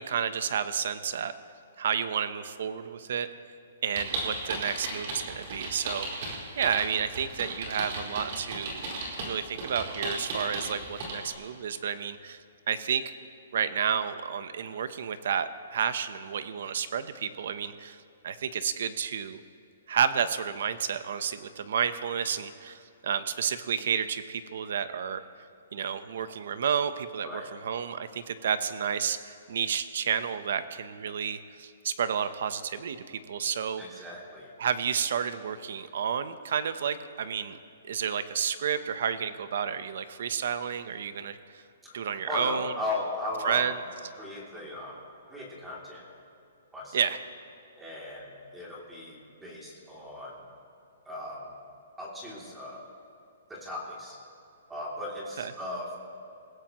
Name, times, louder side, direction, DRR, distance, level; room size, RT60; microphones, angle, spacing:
voice 1, 0.0-1.3 1.8-3.3 3.8-8.9 9.2-12.4 12.7-13.1 13.5-18.0 18.2-19.4 19.9-25.2 25.7-33.8 34.6-37.6 37.8-41.6 41.9-42.7 43.4-43.7 46.9-47.2 55.4-55.5, right 7 dB, 60° right, 12 dB, 0.9 m, -31 dB
sound 1, 3.9-11.3, right 2 dB, 40° right, 4.8 m, -36 dB
voice 2, 33.8-34.5 41.8-43.7 44.1-45.0 45.3-46.1 46.7-47.0 47.8-50.3 51.0-51.5 52.0-52.8 53.5-54.2 54.7-56.0, left 1 dB, 5° right, -4 dB, 2.9 m, -37 dB
27.5 x 16.0 x 3.1 m, 2.7 s
hypercardioid pair, 170°, 0 cm